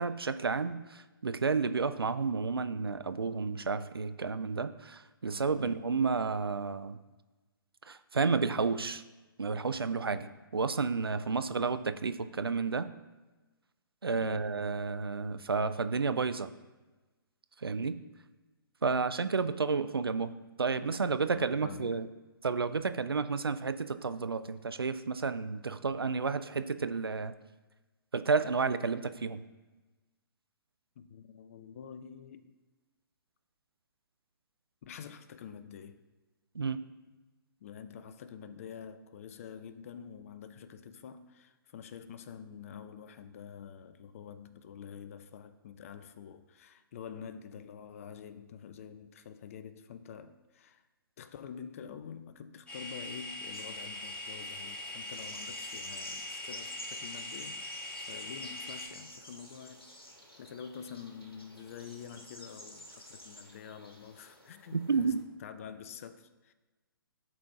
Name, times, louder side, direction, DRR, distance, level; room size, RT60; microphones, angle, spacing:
voice 1, 0.0-7.0 7.8-9.0 9.4-10.3 10.5-12.9 14.0-16.5 17.6-18.0 18.8-22.1 22.4-27.3 28.1-29.4 36.5-36.8 64.7-65.2, right 4 dB, 80° right, 0.4 m, -31 dB
voice 2, 5.5-5.9 10.1-10.4 14.2-14.6 20.8-21.9 31.0-32.6 34.8-36.0 37.6-50.8 51.2-59.9 60.4-66.5, left 7 dB, 35° left, 0.4 m, -47 dB
sound 1, 52.7-58.9, left 2 dB, 10° left, 1.1 m, -42 dB
sound 2, 53.5-65.2, equal, 80° left, 1.4 m, -51 dB
11.5 x 4.1 x 2.9 m
figure-of-eight pair, 125°, 12 cm